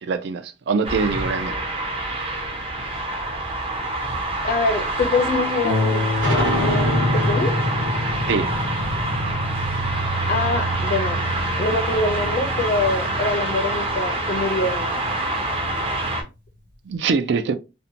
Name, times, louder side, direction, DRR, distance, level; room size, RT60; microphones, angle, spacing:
voice 1, 0.0-1.6 8.3-8.5 16.9-17.5, right 5 dB, 65° right, 0.3 m, -23 dB
sound 1, 0.8-16.2, right 2 dB, 30° right, 0.6 m, -26 dB
voice 2, 4.4-6.0 6.6-7.5 10.3-11.2 11.6-15.0, left 2 dB, 50° left, 0.5 m, -24 dB
Harp, 5.6-14.8 15.7-15.8 16.2-16.3, left 3 dB, 50° right, 1.2 m, -31 dB
sound 2, 6.2-11.4, left 1 dB, 85° right, 1.3 m, -26 dB
2.6 x 2.1 x 2.6 m
head